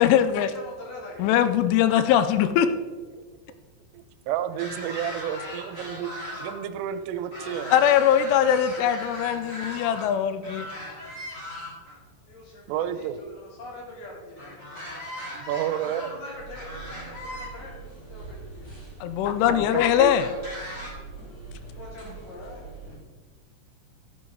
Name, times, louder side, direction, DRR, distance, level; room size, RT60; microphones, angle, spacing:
voice 1, 0.0-0.5 1.2-2.7 7.7-10.7 19.0-20.3, left 10 dB, 80° left, 11 dB, 3.0 m, -21 dB
voice 2, 0.5-1.3 12.2-15.0 15.7-17.8 18.1-18.7 21.6-22.7, left 2 dB, 50° left, -4 dB, 4.8 m, -43 dB
voice 3, 3.9-6.1 6.4-7.7 12.7-13.2 15.3-16.2 19.5-20.1, right 10 dB, 85° right, 10 dB, 3.2 m, -31 dB
sound 1, 4.5-6.5 6.9-10.1 10.4-12.0 14.4-17.5 18.4-18.5 20.0-20.9, left 1 dB, 15° left, 3.8 m, -38 dB
sound 2, 16.3-23.0, right 4 dB, 35° left, 4.6 m, -43 dB
14.5 x 9.9 x 4.0 m, 1.4 s
omnidirectional pair, 5.9 m